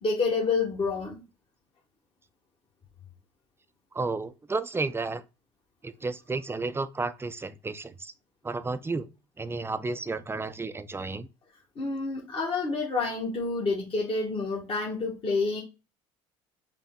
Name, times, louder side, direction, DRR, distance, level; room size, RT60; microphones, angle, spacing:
voice 1, 0.0-1.2 11.7-15.6, left 4 dB, 40° left, 1.4 m, -28 dB
voice 2, 3.9-5.2 5.8-8.1 8.4-9.1 9.4-11.3, right 3 dB, 15° right, 0.5 m, -32 dB
5.6 x 2.2 x 3.6 m
hypercardioid pair, 65°, 15 cm